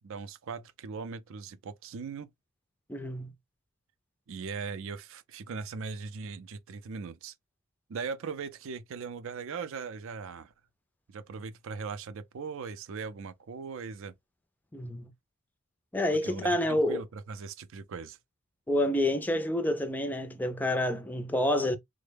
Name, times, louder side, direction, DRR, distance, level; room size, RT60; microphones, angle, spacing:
voice 1, 0.0-2.3 4.3-7.3 7.9-10.5 11.1-14.1 16.2-18.2, right 5 dB, 65° right, 0.4 m, -39 dB
voice 2, 2.9-3.3 14.7-15.1 15.9-17.0 18.7-21.8, left 1 dB, 10° left, 0.4 m, -28 dB
3.5 x 2.1 x 3.3 m
head